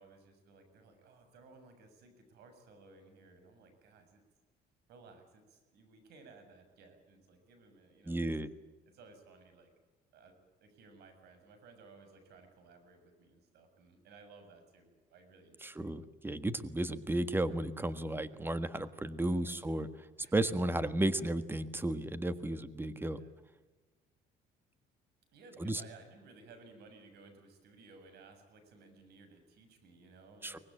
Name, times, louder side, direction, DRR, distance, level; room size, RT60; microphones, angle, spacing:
voice 1, 0.0-4.2 4.9-8.3 8.9-9.7 10.1-10.3 10.6-15.9 19.3-19.7 20.2-20.4 23.0-23.3 25.3-30.6, right 3 dB, 75° right, 7 dB, 7.2 m, -58 dB
voice 2, 8.1-8.5 15.6-19.9 20.3-23.2 25.6-25.8 30.4-30.6, right 1 dB, 15° right, 12 dB, 1.6 m, -33 dB
24.0 x 19.5 x 9.0 m, 1.2 s
cardioid pair, 110°, 17 cm